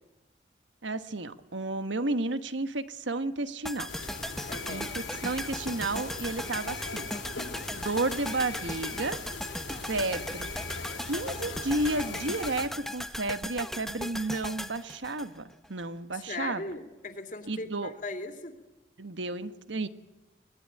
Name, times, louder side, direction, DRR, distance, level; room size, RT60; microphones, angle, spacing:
voice 1, 0.8-3.9 4.7-7.1 7.7-9.2 9.7-10.5 11.0-16.6 17.5-17.9 19.0-19.9, right 2 dB, 80° right, 12 dB, 1.3 m, -32 dB
sound 1, 3.7-15.8 16.1-16.2, left 1 dB, ahead, 0.8 m, -38 dB
sound 2, 3.9-12.7, left 3 dB, 80° left, 3.4 m, -40 dB
voice 2, 4.5-4.9 16.1-18.6, left 2 dB, 45° left, 5 dB, 2.9 m, -38 dB
24.5 x 20.0 x 8.7 m, 1.0 s
head